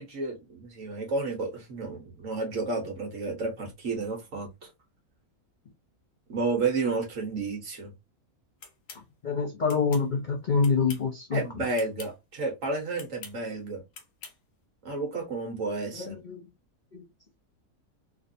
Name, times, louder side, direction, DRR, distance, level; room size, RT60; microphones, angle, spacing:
voice 1, 0.0-4.7 6.3-7.9 11.3-13.8 14.8-16.1, right 3 dB, 55° right, 1.5 m, -31 dB
sound 1, 8.6-9.0 9.7-10.1 10.6-11.1 11.7-12.1 12.9-13.4 13.9-14.4, left 5 dB, 70° left, 1.3 m, -45 dB
voice 2, 9.2-11.4 16.0-16.4 16.9-17.0, left 5 dB, 50° left, 0.5 m, -26 dB
3.5 x 2.6 x 2.6 m
omnidirectional pair, 1.7 m